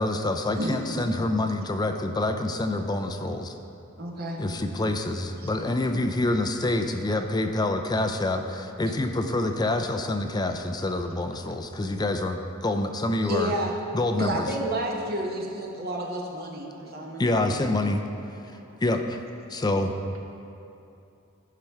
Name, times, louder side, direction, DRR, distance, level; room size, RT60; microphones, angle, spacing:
voice 1, 0.0-3.5 4.4-13.5 13.9-14.5 17.2-18.0 18.8-19.2 19.5-19.9, left 2 dB, 20° left, 6 dB, 0.4 m, -26 dB
voice 2, 0.5-1.0 4.0-4.4 5.4-5.5 8.9-9.0 13.3-13.8 14.2-17.7, right 1 dB, 50° right, -1 dB, 1.2 m, -31 dB
voice 3, 10.7-11.6 16.0-17.4 18.4-18.8 19.2-19.9, right 2 dB, 80° right, -1 dB, 1.4 m, -56 dB
14.5 x 5.8 x 3.5 m, 2.7 s
head